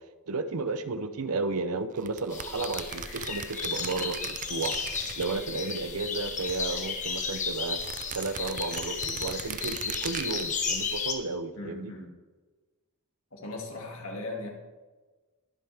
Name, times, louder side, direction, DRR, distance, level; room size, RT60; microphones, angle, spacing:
voice 1, 0.3-4.7 5.1-7.8 8.1-11.9, right 3 dB, 80° right, 11 dB, 0.8 m, -33 dB
sound 1, 2.0-5.8 6.0-7.2 7.7-10.5, right 8 dB, 35° right, 0.5 m, -39 dB
sound 2, 2.3-11.1, left 5 dB, 35° left, 1.4 m, -34 dB
voice 2, 11.6-12.1 13.3-14.5, left 2 dB, 65° left, 0 dB, 2.5 m, -38 dB
21.5 x 7.8 x 3.5 m, 1.3 s
head